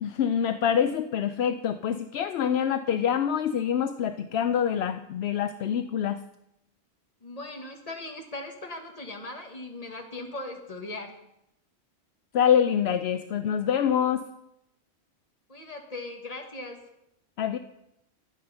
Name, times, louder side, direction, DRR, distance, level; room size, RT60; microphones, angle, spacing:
voice 1, 0.0-6.2 12.3-14.2 17.4-17.6, left 8 dB, 75° left, 9 dB, 0.8 m, -25 dB
voice 2, 7.2-11.2 15.5-16.8, left 2 dB, 35° left, 3 dB, 1.6 m, -39 dB
12.0 x 9.4 x 5.5 m, 0.84 s
omnidirectional pair, 1.1 m